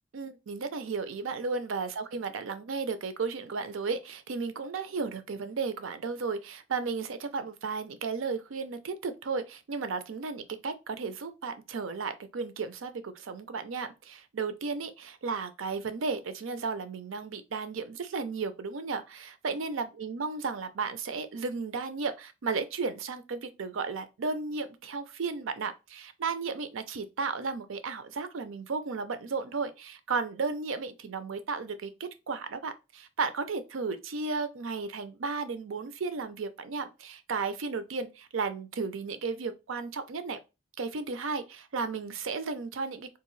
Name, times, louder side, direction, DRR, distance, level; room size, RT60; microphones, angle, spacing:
voice 1, 0.1-40.4 40.8-43.2, right 4 dB, 90° right, 0.5 m, -34 dB
3.6 x 2.6 x 3.1 m
head